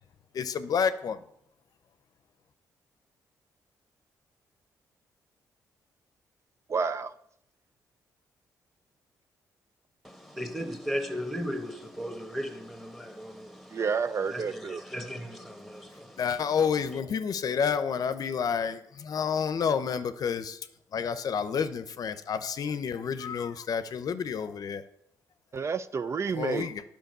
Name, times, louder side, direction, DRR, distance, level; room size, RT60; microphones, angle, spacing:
voice 1, 0.3-1.2 16.2-20.6 20.9-24.8 26.3-26.8, left 6 dB, 60° left, 0.6 m, -29 dB
voice 2, 6.7-7.1 13.7-14.8 25.5-26.7, right 5 dB, 40° right, 0.4 m, -30 dB
voice 3, 10.0-13.8 14.3-16.4, equal, ahead, 1.4 m, -36 dB
9.1 x 5.1 x 6.7 m
cardioid pair, 70°, 7 cm